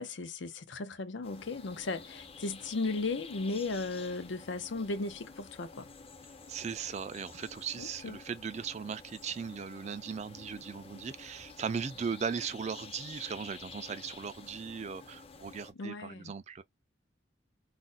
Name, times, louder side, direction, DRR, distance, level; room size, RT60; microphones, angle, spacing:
voice 1, 0.0-5.9 7.8-8.2 15.7-16.3, left 3 dB, 85° left, 0.6 m, -36 dB
sound 1, 1.2-15.7, left 4 dB, 30° left, 0.5 m, -50 dB
voice 2, 6.5-16.6, right 6 dB, 35° right, 0.3 m, -38 dB
2.5 x 2.1 x 3.9 m
head